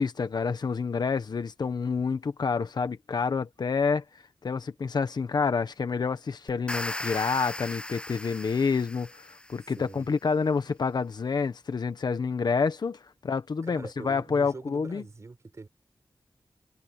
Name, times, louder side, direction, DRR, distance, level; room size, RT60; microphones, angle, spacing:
voice 1, 0.0-4.0 4.4-15.0, left 5 dB, 65° left, 1.3 m, -28 dB
sound 1, 6.5-9.7, left 1 dB, 15° left, 0.7 m, -37 dB
voice 2, 9.8-10.1 13.6-15.7, right 3 dB, 40° right, 6.6 m, -44 dB
wide cardioid pair, 130°, 8 cm